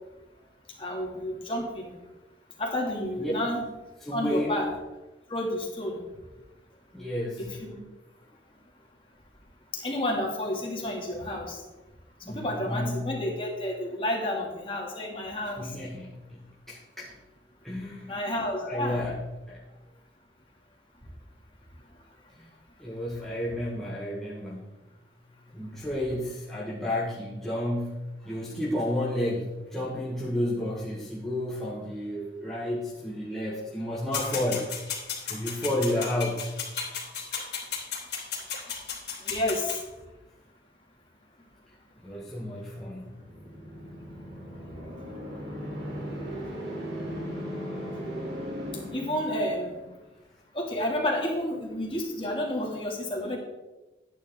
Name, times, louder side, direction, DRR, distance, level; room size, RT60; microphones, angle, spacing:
voice 1, 0.8-1.9 2.6-3.6 4.1-4.7 5.3-6.0 7.4-7.8 9.7-11.6 12.3-15.6 18.1-19.0 39.2-39.8 48.9-49.7 50.5-53.4, left 1 dB, 30° left, -1 dB, 2.3 m, -30 dB
voice 2, 4.0-4.5 6.9-7.6 12.2-13.1 15.6-17.2 17.6-18.2 18.6-19.6 22.4-22.5 22.8-24.8 25.5-34.7 35.3-36.5 42.0-43.2, left 1 dB, ahead, -6 dB, 1.3 m, -31 dB
sound 1, 34.1-39.8, left 6 dB, 65° left, 3.1 m, -34 dB
sound 2, 42.9-49.9, equal, 70° right, 3.5 m, -37 dB
12.0 x 9.7 x 3.7 m, 1.1 s
head